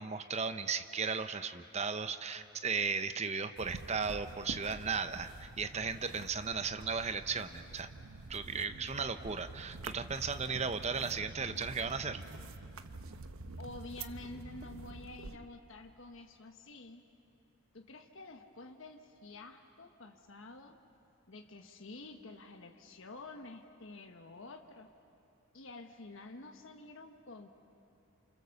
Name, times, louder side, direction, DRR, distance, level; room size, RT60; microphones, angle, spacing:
voice 1, 0.0-7.9 8.3-12.2, right 5 dB, 30° right, 10 dB, 0.9 m, -36 dB
sound 1, 3.6-15.4, right 3 dB, 75° right, 1.0 m, -47 dB
sound 2, 7.3-14.0, left 1 dB, 5° left, 2.2 m, -65 dB
voice 2, 13.6-17.1 17.7-20.8 21.3-24.9 25.5-27.5, left 2 dB, 65° left, 4 dB, 1.2 m, -49 dB
29.5 x 28.0 x 7.1 m, 2.7 s
head